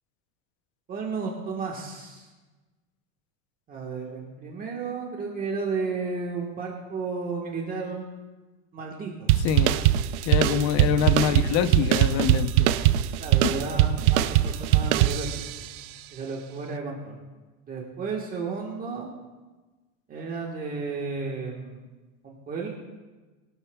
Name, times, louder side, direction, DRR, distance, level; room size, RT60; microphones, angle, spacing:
voice 1, 0.9-2.3 3.7-8.0 8.7-9.3 10.5-10.6 13.2-15.4 16.1-17.2 17.7-19.1 20.1-21.9 22.2-22.7, right 4 dB, 20° right, -1 dB, 1.4 m, -33 dB
sound 1, 9.3-15.7, right 13 dB, 60° right, 0.6 m, -22 dB
voice 2, 9.4-9.8 10.2-12.7 13.4-13.6, left 8 dB, 40° left, 11 dB, 0.7 m, -25 dB
22.0 x 12.0 x 2.3 m, 1.2 s
supercardioid pair, 165°, 40 cm